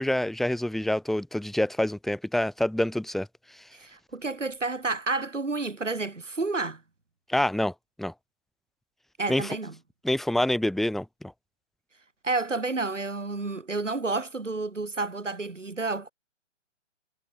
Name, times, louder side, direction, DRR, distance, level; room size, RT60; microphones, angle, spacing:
voice 1, 0.0-3.3 7.3-7.7 8.0-8.1 9.3-9.5 10.0-11.0, left 1 dB, ahead, 2.9 m, -26 dB
voice 2, 3.7-6.8 9.2-9.8 12.2-16.1, right 3 dB, 85° right, 3.1 m, -30 dB
figure-of-eight pair, 140°, 37 cm